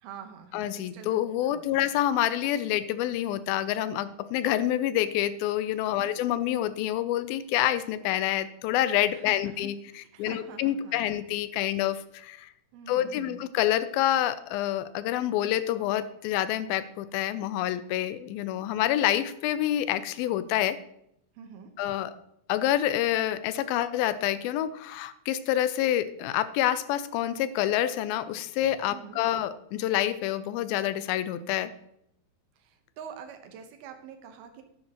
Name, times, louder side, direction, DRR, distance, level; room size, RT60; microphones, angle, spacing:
voice 1, 0.0-1.9 6.0-6.2 9.1-11.2 12.7-13.5 21.3-21.7 28.9-29.3 32.6-34.6, right 7 dB, 85° right, 6 dB, 2.9 m, -46 dB
voice 2, 0.5-12.5 12.9-20.8 21.8-22.1 22.5-31.7, left 12 dB, 85° left, 14 dB, 2.3 m, -27 dB
11.5 x 11.0 x 2.9 m, 0.76 s
omnidirectional pair, 4.3 m